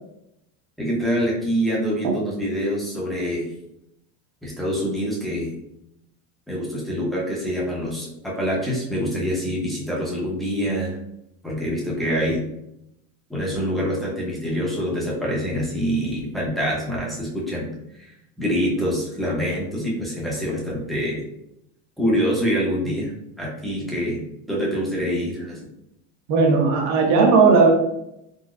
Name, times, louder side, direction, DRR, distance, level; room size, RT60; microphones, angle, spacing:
voice 1, 0.8-3.5 4.4-5.6 6.5-11.0 11.4-12.4 13.3-17.7 18.0-18.1 18.4-21.3 22.0-23.1 23.4-25.6, equal, ahead, -5 dB, 0.6 m, -25 dB
voice 2, 26.3-27.7, right 4 dB, 40° right, 1 dB, 0.7 m, -16 dB
3.8 x 2.0 x 2.3 m, 0.81 s
supercardioid pair, 145°, 43 cm